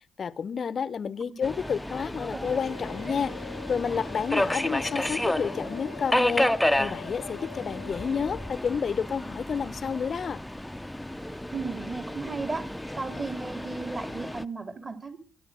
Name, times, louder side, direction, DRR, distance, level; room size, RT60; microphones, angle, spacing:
voice 1, 0.2-3.3 3.7-6.5 6.8-10.4, left 6 dB, 50° left, 0.8 m, -30 dB
Subway metro underground, 1.4-14.4, left 1 dB, 5° left, 0.8 m, -31 dB
sound 1, 2.4-8.6, left 21 dB, 80° left, 0.7 m, -46 dB
voice 2, 11.5-12.7 13.0-15.2, right 4 dB, 30° right, 3.3 m, -35 dB
27.5 x 10.5 x 4.9 m
hypercardioid pair, 45°, 0 cm